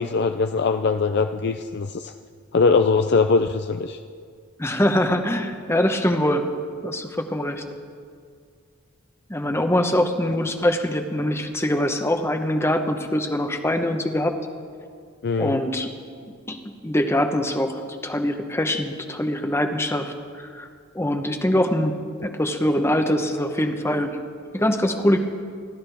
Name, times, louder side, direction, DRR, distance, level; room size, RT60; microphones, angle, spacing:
voice 1, 0.0-2.1 2.5-4.0 15.2-15.6, left 4 dB, 50° left, 7 dB, 0.4 m, -21 dB
voice 2, 4.6-6.5 6.8-7.6 9.3-14.4 15.4-15.9 16.5-20.1 20.5-20.7 20.9-24.2 24.5-25.2, left 1 dB, 10° left, 6 dB, 1.0 m, -23 dB
29.5 x 13.0 x 3.5 m, 2.2 s
head